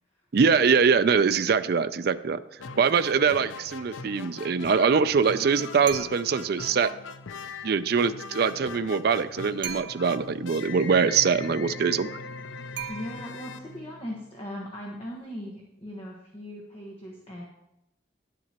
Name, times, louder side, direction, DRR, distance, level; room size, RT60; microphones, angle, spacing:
voice 1, 0.3-2.4 2.8-6.9 7.6-12.2, right 5 dB, 55° right, 12 dB, 0.4 m, -23 dB
sound 1, 2.6-14.5, left 4 dB, 85° left, 0.5 m, -41 dB
sound 2, 5.8-6.5 9.6-10.3 12.7-13.5, right 10 dB, 80° right, 1.2 m, -38 dB
voice 2, 12.9-17.4, equal, 30° left, -2 dB, 1.3 m, -39 dB
10.5 x 10.0 x 2.9 m, 0.85 s
head